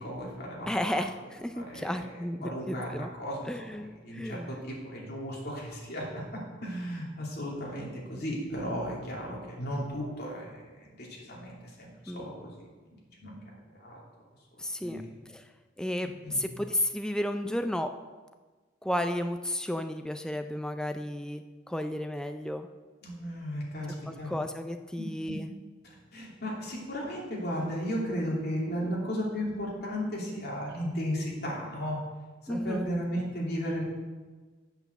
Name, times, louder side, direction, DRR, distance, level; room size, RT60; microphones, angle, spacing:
voice 1, 0.0-1.0 1.5-2.0 2.4-3.5 4.0-6.2 6.6-12.5 13.2-13.4 13.7-14.0 14.5-15.2 16.2-16.5 23.0-24.3 25.0-25.4 25.8-32.0 32.4-33.8, equal, 55° left, -4 dB, 2.7 m, -35 dB
voice 2, 0.7-3.1 3.5-4.6 12.1-12.3 14.6-15.0 15.3-15.5 15.8-17.9 18.8-22.7 24.1-25.5 32.5-32.9, left 1 dB, 5° left, 7 dB, 0.3 m, -33 dB
8.1 x 7.0 x 6.7 m, 1.3 s
head